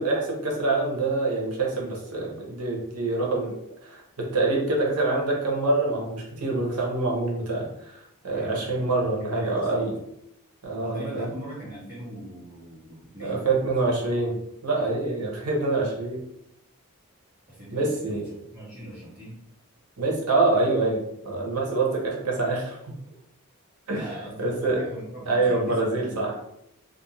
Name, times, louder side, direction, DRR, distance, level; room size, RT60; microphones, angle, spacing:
voice 1, 0.0-3.6 3.8-9.9 10.6-11.3 13.2-16.2 17.7-18.3 20.0-22.9 23.9-24.0 24.4-24.8 25.3-26.4, right 2 dB, 90° right, -1 dB, 0.8 m, -26 dB
voice 2, 8.3-8.9 9.2-9.9 10.8-13.9 17.5-19.4 23.9-26.4, equal, 25° right, -12 dB, 1.1 m, -41 dB
2.5 x 2.2 x 2.9 m, 0.80 s
head